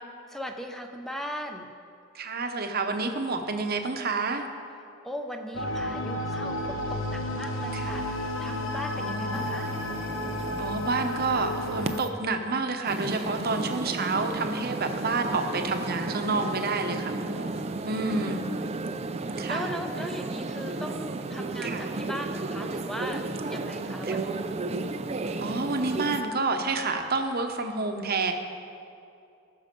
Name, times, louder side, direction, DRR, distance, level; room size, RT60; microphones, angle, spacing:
voice 1, 0.3-1.7 5.0-9.7 18.1-18.9 19.5-24.5, equal, ahead, 4 dB, 0.7 m, -38 dB
voice 2, 2.1-4.5 7.7-7.9 8.9-9.7 10.6-17.5 17.8-18.4 19.4-19.7 21.6-21.8 24.1-24.2 25.4-28.3, right 3 dB, 45° right, 5 dB, 0.9 m, -29 dB
sound 1, 5.5-12.0, left 1 dB, 70° left, 1.0 m, -32 dB
sound 2, 9.3-12.1 12.8-26.2, right 3 dB, 30° right, 0.5 m, -33 dB
19.0 x 6.4 x 5.3 m, 2.6 s
head